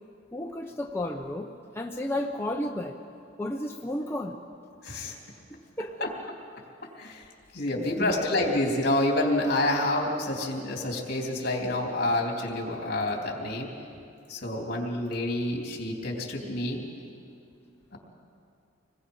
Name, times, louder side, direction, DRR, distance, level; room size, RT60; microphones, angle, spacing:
voice 1, 0.3-1.5 1.7-3.0 3.4-4.3 5.1-5.2 5.8-6.1 7.8-8.3, left 1 dB, 15° left, 1 dB, 0.8 m, -33 dB
voice 2, 4.8-5.1 6.0-6.1 7.0-7.2 7.5-13.7 14.3-17.0 17.9-18.0, left 1 dB, 55° left, 0 dB, 3.4 m, -28 dB
26.5 x 20.5 x 5.6 m, 2.5 s
head